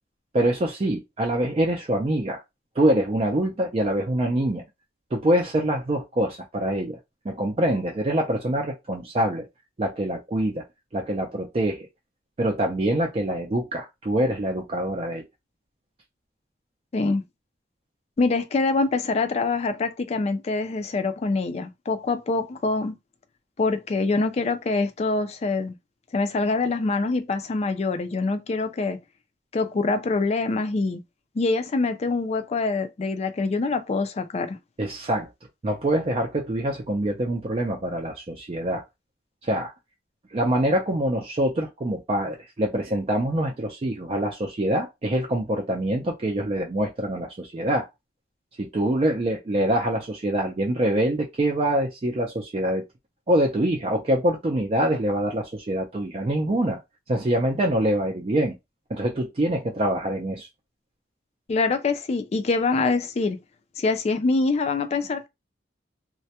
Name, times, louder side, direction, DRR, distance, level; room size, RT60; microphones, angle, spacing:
voice 1, 0.3-2.4 2.8-4.6 5.1-7.0 7.2-9.5 9.8-10.6 10.9-11.9 12.4-15.2 34.8-35.3 35.6-38.8 39.4-39.7 40.3-47.9 48.6-52.8 53.3-56.8 57.1-58.6 58.9-60.5, right 1 dB, 35° right, 0.4 m, -25 dB
voice 2, 18.2-22.9 23.6-25.8 26.1-29.0 29.5-31.0 31.4-34.6 61.5-63.4 63.8-65.3, left 3 dB, 35° left, 0.3 m, -25 dB
2.2 x 2.1 x 2.8 m
head